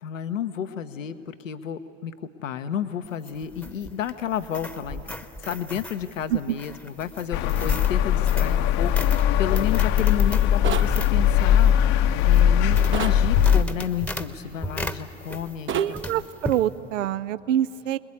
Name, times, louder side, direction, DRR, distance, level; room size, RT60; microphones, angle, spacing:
voice 1, 0.0-5.0 5.4-15.7 16.1-16.2, left 9 dB, 80° left, 9 dB, 1.1 m, -31 dB
sound 1, 3.0-15.7 15.9-16.6, left 1 dB, 5° left, 1.1 m, -36 dB
sound 2, 7.3-13.6, left 10 dB, 45° left, 1.0 m, -20 dB
sound 3, 10.6-10.9 12.9-13.2 15.7-15.9, right 7 dB, 30° right, 1.3 m, -29 dB
voice 2, 15.7-18.0, right 11 dB, 70° right, 15 dB, 0.7 m, -25 dB
29.5 x 21.0 x 8.6 m, 2.7 s
figure-of-eight pair, 75°, 38 cm